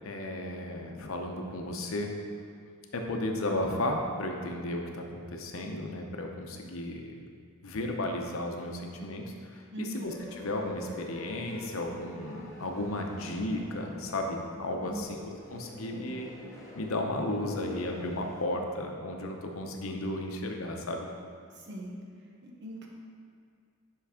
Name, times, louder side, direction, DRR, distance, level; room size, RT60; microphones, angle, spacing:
voice 1, 0.0-2.1 2.9-7.1 7.6-16.3 16.8-21.1, left 1 dB, 75° left, 2 dB, 0.8 m, -34 dB
voice 2, 9.7-10.1 14.8-15.2 21.5-22.0 22.4-22.9, equal, 60° right, -1 dB, 1.0 m, -40 dB
sound 1, 10.0-18.4, equal, 15° left, 1.6 m, -48 dB
5.8 x 5.5 x 4.9 m, 2.1 s
head